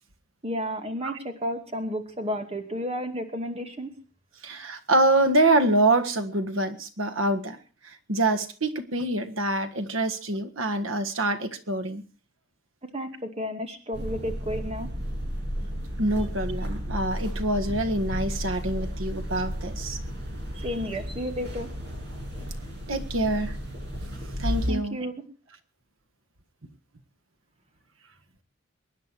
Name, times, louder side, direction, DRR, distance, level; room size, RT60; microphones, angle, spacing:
voice 1, 0.4-3.9 12.9-14.9 20.5-21.7 24.7-25.2, equal, 30° right, 2.4 m, -32 dB
voice 2, 4.4-7.6 7.8-12.0 16.0-20.0 22.9-23.6 24.4-25.0, right 2 dB, 90° right, 1.7 m, -25 dB
sound 1, 13.9-24.7, equal, 60° right, 7.2 m, -33 dB
23.5 x 10.5 x 4.6 m
head